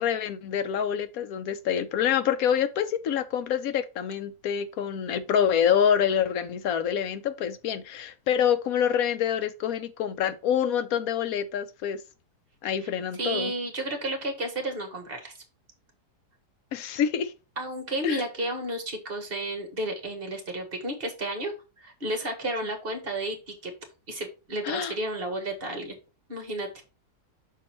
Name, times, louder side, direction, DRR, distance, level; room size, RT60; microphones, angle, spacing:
voice 1, 0.0-12.0 12.6-13.5 16.7-17.3 18.0-18.2 24.6-24.9, left 8 dB, 70° left, 1.0 m, -26 dB
voice 2, 13.2-15.3 17.6-23.7 24.1-26.0 26.3-26.7, right 1 dB, 35° right, 1.6 m, -32 dB
6.1 x 4.1 x 4.3 m
omnidirectional pair, 1.8 m